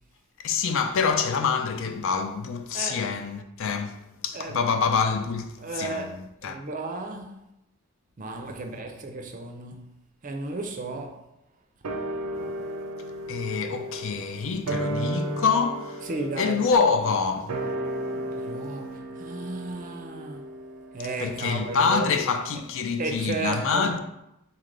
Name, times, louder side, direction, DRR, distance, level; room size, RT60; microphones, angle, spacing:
voice 1, 0.4-6.6 12.4-12.5 13.3-16.1 16.4-17.6 21.2-24.0, left 5 dB, 60° left, 0.4 m, -26 dB
voice 2, 4.3-4.7 5.6-6.1 6.4-7.4 8.2-9.9 10.2-11.2 16.1-16.6 18.4-20.4 20.9-22.2 23.0-23.9, right 3 dB, 35° right, 0.5 m, -34 dB
sound 1, 11.8-22.5 22.7-22.8, right 1 dB, 90° right, 0.6 m, -34 dB
4.1 x 3.3 x 3.8 m
head